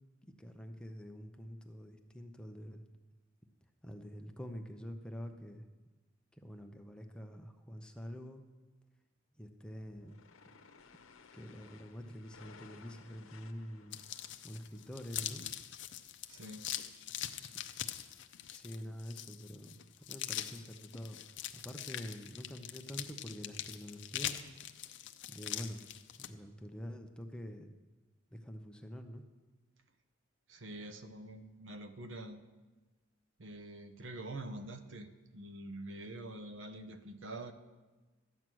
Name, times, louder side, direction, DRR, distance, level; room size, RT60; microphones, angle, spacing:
voice 1, 0.2-2.8 3.8-5.7 6.3-8.4 9.4-10.2 11.3-14.0 14.4-15.4 18.5-19.8 20.1-21.2 21.5-24.5 24.8-25.0 25.3-25.9 26.2-27.7 28.3-29.2, equal, 5° left, 4 dB, 0.7 m, -46 dB
sound 1, 9.8-15.4, left 5 dB, 90° left, 0.9 m, -59 dB
sound 2, 13.9-26.3, left 12 dB, 60° left, 0.6 m, -43 dB
voice 2, 16.3-16.7 30.5-32.4 33.4-37.5, right 1 dB, 65° right, 8 dB, 0.9 m, -46 dB
12.5 x 9.0 x 6.2 m, 1.2 s
head